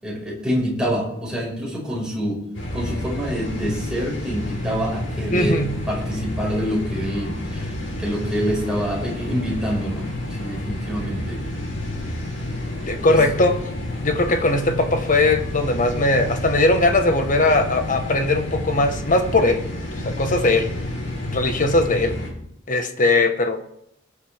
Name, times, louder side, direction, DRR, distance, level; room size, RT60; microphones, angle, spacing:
voice 1, 0.0-2.4 2.7-7.7 8.0-10.1 10.4-11.4 13.1-13.2, equal, 5° right, 5.6 m, -26 dB
sound 1, 2.5-22.3, left 1 dB, 85° left, 4.2 m, -30 dB
voice 2, 5.3-5.9 12.9-13.7 14.0-19.7 20.0-20.7 21.3-22.2 22.7-23.6, left 2 dB, 45° left, 1.4 m, -19 dB
21.5 x 8.3 x 3.6 m
head